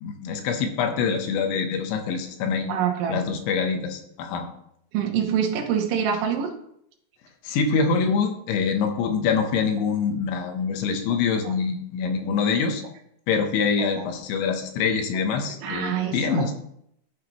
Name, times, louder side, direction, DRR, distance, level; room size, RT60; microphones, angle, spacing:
voice 1, 0.0-2.7 3.1-4.5 7.4-12.8 13.3-16.5, left 5 dB, 75° left, 5 dB, 3.2 m, -25 dB
voice 2, 2.7-3.2 4.9-6.5 14.0-14.1 15.6-16.5, right 8 dB, 75° right, 3 dB, 3.5 m, -25 dB
12.5 x 7.3 x 3.0 m, 0.72 s
omnidirectional pair, 5.6 m